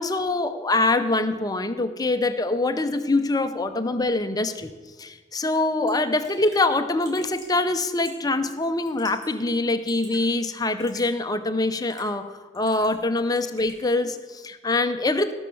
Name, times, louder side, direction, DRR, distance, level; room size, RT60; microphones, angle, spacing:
voice 1, 0.0-4.7 5.0-15.3, left 2 dB, 20° left, 8 dB, 0.7 m, -24 dB
Raindrop / Drip, 5.5-5.6 5.9-6.0 6.2-6.6 7.0-7.5 8.0-8.3 8.8-9.3 9.6-10.2 10.8-11.1 11.7-12.2 12.5-13.1 13.3-13.8, equal, 20° right, 3.7 m, -47 dB
17.0 x 6.3 x 7.0 m, 1.4 s
head